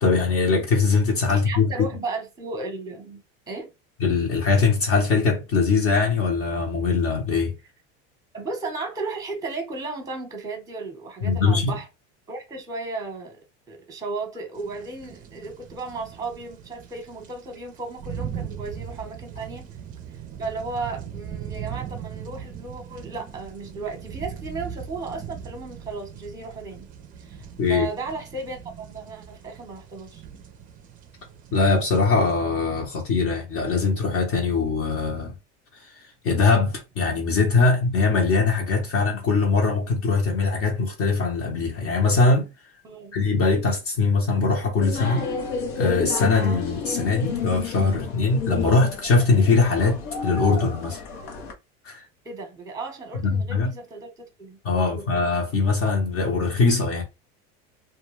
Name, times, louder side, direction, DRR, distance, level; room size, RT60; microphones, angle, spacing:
voice 1, 0.0-1.9 4.0-7.5 11.2-11.7 27.6-27.9 31.5-35.3 36.2-42.5 43.1-45.2 45.8-51.0 51.8-52.0 53.2-53.7 54.6-57.0, left 4 dB, 45° left, 0.8 m, -21 dB
voice 2, 1.3-3.7 8.3-11.9 12.3-13.4 13.7-19.7 20.4-26.9 27.2-30.2 42.8-43.1 52.2-55.1, right 3 dB, 10° right, 0.9 m, -35 dB
sound 1, 14.6-32.4, right 8 dB, 30° right, 0.4 m, -39 dB
sound 2, 44.8-51.5, left 5 dB, 85° left, 0.8 m, -31 dB
2.3 x 2.2 x 3.1 m
supercardioid pair, 135°, 31 cm